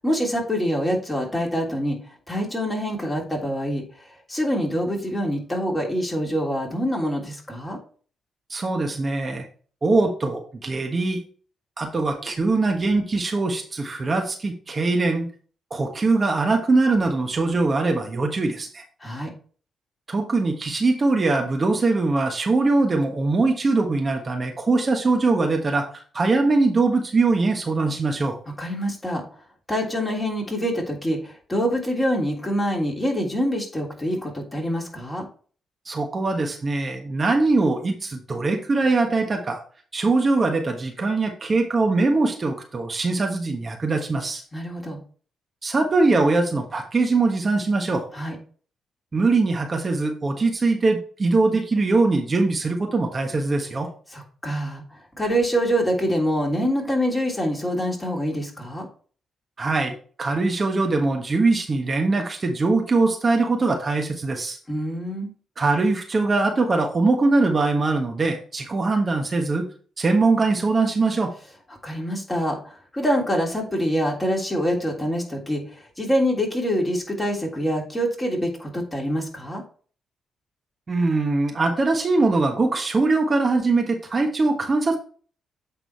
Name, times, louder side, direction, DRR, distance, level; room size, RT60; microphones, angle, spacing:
voice 1, 0.0-2.0 2.3-3.8 4.3-7.8 19.0-19.3 28.6-29.2 29.7-35.3 44.5-45.0 48.1-48.4 54.1-54.8 55.2-58.9 64.7-65.3 71.8-75.6 76.0-79.6, equal, 20° left, 0 dB, 3.2 m, -25 dB
voice 2, 8.5-9.5 9.8-11.2 11.8-15.3 15.7-18.8 20.1-28.4 35.8-39.6 39.9-44.4 45.6-48.0 49.1-53.9 59.6-64.6 65.6-69.6 70.0-71.3 80.9-85.0, right 3 dB, 40° right, 3 dB, 1.4 m, -22 dB
8.5 x 3.8 x 4.5 m, 0.42 s
supercardioid pair, 50°, 0 cm